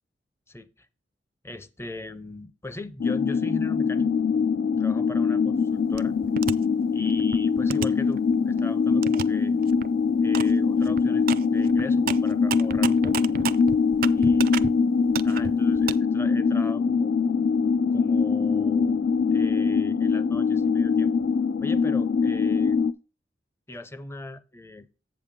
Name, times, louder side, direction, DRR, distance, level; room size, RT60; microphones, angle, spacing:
voice 1, 0.5-0.9 1.4-4.1 4.8-6.2 6.9-9.6 10.2-13.2 14.1-14.6 15.2-17.1 17.9-19.0 19.3-21.1 21.6-22.8 23.7-24.9, left 2 dB, 15° left, 0.5 m, -40 dB
sound 1, 3.0-22.9, left 5 dB, 70° left, 0.3 m, -23 dB
sound 2, 5.9-6.5 7.1-8.6 9.0-9.2 9.6-9.9 10.3-10.5 10.8-14.7 15.1-15.9, right 7 dB, 55° right, 0.4 m, -32 dB
7.9 x 6.7 x 3.6 m
head